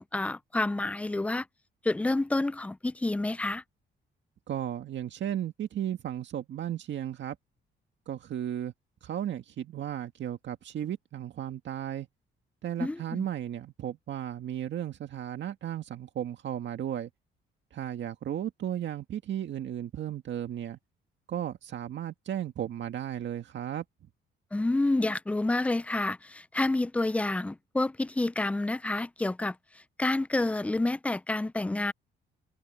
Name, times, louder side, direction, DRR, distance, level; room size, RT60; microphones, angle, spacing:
voice 1, 0.0-1.4 1.8-3.6 12.8-13.3 24.5-29.6 30.0-31.9, left 2 dB, 5° left, 0.4 m, -29 dB
voice 2, 4.5-7.4 8.1-8.7 9.0-12.1 12.6-17.1 17.7-20.8 21.3-23.8, right 10 dB, 65° right, 1.9 m, -35 dB
cardioid pair, 90°, 20 cm